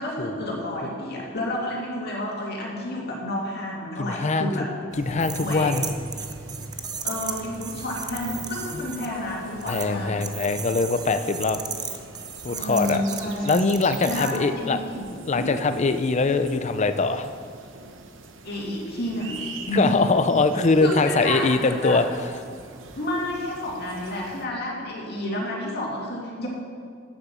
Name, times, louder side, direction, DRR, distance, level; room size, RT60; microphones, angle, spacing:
voice 1, 0.0-4.7 5.4-5.8 7.0-10.3 12.5-13.7 14.1-15.1 15.3-15.5 18.4-20.1 20.8-22.0 22.9-26.5, left 1 dB, 55° left, -3 dB, 2.4 m, -30 dB
voice 2, 4.0-4.5 5.0-5.9 8.7-8.8 9.7-11.6 12.4-13.0 13.4-14.8 15.2-17.3 19.7-22.0, left 3 dB, 35° left, 10 dB, 0.5 m, -22 dB
sound 1, 4.9-24.5, right 3 dB, 70° right, 0.9 m, -43 dB
sound 2, 5.2-9.1 9.6-9.9 10.2-14.4, right 6 dB, 20° right, 0.6 m, -35 dB
8.8 x 7.9 x 7.0 m, 2.2 s
head